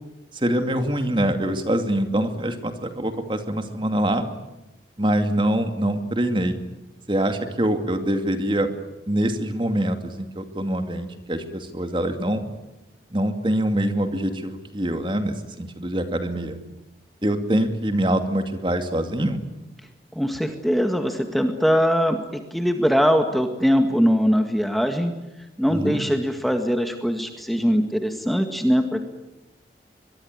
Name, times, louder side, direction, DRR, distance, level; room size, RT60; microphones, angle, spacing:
voice 1, 0.3-4.3 5.0-6.5 7.1-8.7 9.1-12.4 13.1-16.6 17.2-19.4 25.7-26.0, right 1 dB, 30° right, 7 dB, 2.4 m, -24 dB
voice 2, 20.2-25.1 25.6-29.1, equal, ahead, 5 dB, 1.9 m, -21 dB
23.5 x 22.5 x 9.7 m, 0.99 s
head